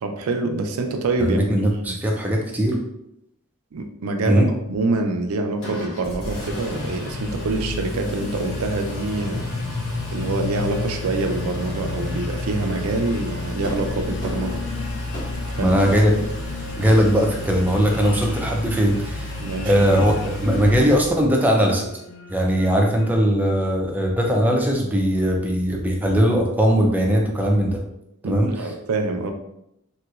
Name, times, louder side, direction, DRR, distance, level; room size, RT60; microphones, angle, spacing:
voice 1, 0.0-2.0 3.7-9.5 10.1-14.6 15.6-15.9 19.4-19.7 28.2-29.3, right 2 dB, 90° right, 5 dB, 0.4 m, -26 dB
voice 2, 1.2-2.8 4.3-4.4 15.6-16.1 16.8-19.3 19.7-21.9 22.3-27.8 28.2-28.7, equal, 10° right, 0 dB, 0.4 m, -19 dB
sound 1, 5.6-23.8, left 4 dB, 85° left, 0.4 m, -37 dB
Engine, 5.6-21.3, left 1 dB, 70° left, 0.9 m, -31 dB
sound 2, 13.6-18.5, equal, 40° left, 1.2 m, -39 dB
3.1 x 2.9 x 2.3 m, 0.81 s
head